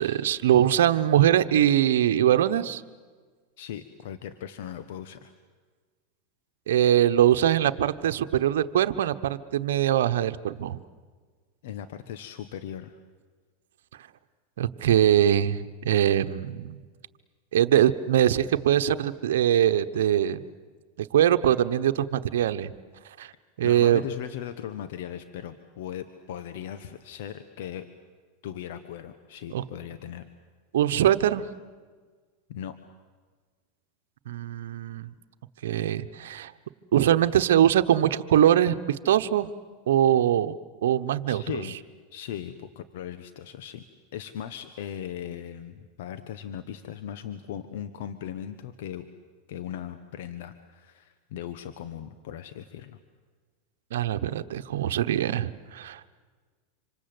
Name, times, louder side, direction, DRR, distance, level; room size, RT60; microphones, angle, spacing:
voice 1, 0.0-2.8 6.7-10.8 14.6-16.8 17.5-20.4 21.1-22.7 23.2-23.3 23.6-24.0 29.5-29.6 30.7-31.4 34.3-35.1 35.6-36.5 36.9-39.5 39.9-40.5 40.8-41.4 53.9-56.1, right 11 dB, 80° right, 9 dB, 1.1 m, -22 dB
voice 2, 3.6-5.3 11.6-13.0 23.6-27.9 28.4-30.2 32.5-32.8 41.3-41.8 42.1-43.8 44.1-49.1 49.5-53.0, left 10 dB, 70° left, 10 dB, 1.3 m, -38 dB
26.5 x 26.5 x 8.0 m, 1.5 s
hypercardioid pair, 110°, 0 cm